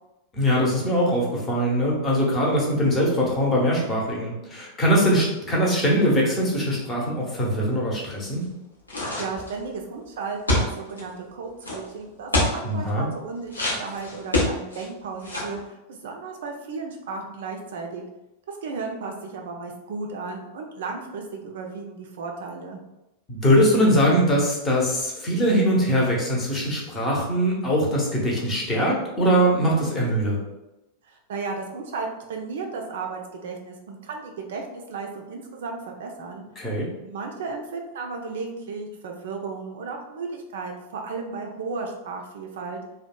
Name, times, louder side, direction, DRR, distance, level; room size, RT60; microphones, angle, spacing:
voice 1, 0.3-8.5 12.6-13.1 23.3-30.4 36.6-36.9, equal, 20° left, -3 dB, 0.7 m, -22 dB
sound 1, 8.9-9.6 10.5-11.0 11.6-11.8 12.3-12.6 13.5-14.9 15.2-15.6, left 1 dB, 80° left, 0.6 m, -24 dB
voice 2, 9.0-18.0 18.5-22.8 31.1-42.8, right 4 dB, 60° right, 2 dB, 0.3 m, -34 dB
2.7 x 2.0 x 2.2 m, 0.97 s
figure-of-eight pair, 90°, 0 cm